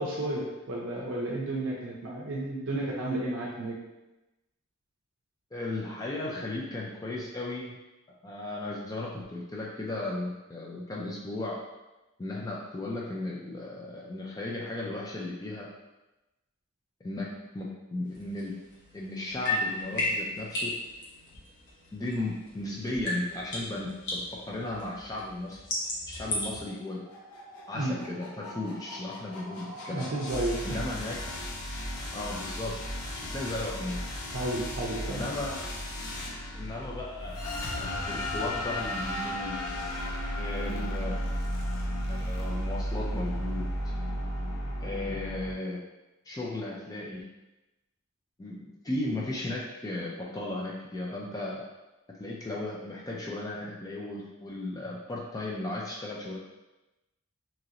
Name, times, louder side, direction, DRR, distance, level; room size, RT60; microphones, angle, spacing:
voice 1, 0.0-3.8 27.7-28.0 29.9-30.8 34.3-35.3, right 1 dB, 60° right, -3 dB, 0.5 m, -32 dB
voice 2, 5.5-7.8 8.2-11.6 12.2-15.7 17.0-18.6 18.9-20.8 21.9-25.6 26.1-27.0 27.7-30.1 30.6-31.2 32.1-32.8 33.1-34.0 35.1-35.6 36.5-37.4 37.7-39.6 40.4-41.2 42.1-43.7 44.8-45.8 46.3-47.3 48.4-51.6 52.2-56.4, left 2 dB, 15° left, -3 dB, 0.3 m, -35 dB
sound 1, 18.1-22.6 22.9-26.6, left 2 dB, 55° left, 0.9 m, -34 dB
sound 2, 26.7-45.5, equal, 85° left, 0.6 m, -35 dB
2.9 x 2.5 x 2.8 m, 1.0 s
head